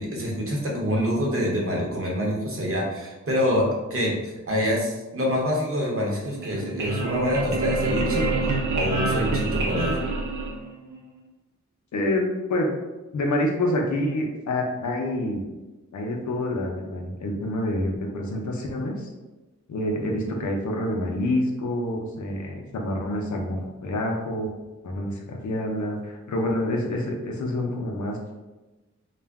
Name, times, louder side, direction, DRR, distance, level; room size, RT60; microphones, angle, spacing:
voice 1, 0.0-8.3 8.7-10.0, equal, 50° right, -2 dB, 0.9 m, -26 dB
sound 1, 6.3-11.0, right 2 dB, 90° right, 0.6 m, -26 dB
voice 2, 11.9-12.7 13.1-15.4 15.9-19.1 19.7-24.5 24.8-28.3, left 1 dB, 75° left, 0 dB, 0.6 m, -27 dB
2.4 x 2.1 x 3.4 m, 1.1 s
cardioid pair, 55°, 29 cm